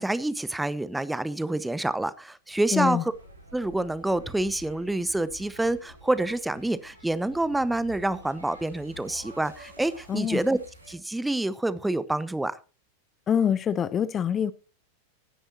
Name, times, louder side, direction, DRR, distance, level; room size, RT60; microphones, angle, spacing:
voice 1, 0.0-3.1 3.5-10.6 10.9-12.5, right 2 dB, 5° right, 0.9 m, -27 dB
voice 2, 2.7-3.0 10.1-10.4 13.3-14.5, left 8 dB, 25° left, 0.6 m, -25 dB
sound 1, 3.1-11.0, right 1 dB, 85° right, 3.0 m, -49 dB
17.0 x 10.0 x 2.9 m
figure-of-eight pair, 90°, 0 cm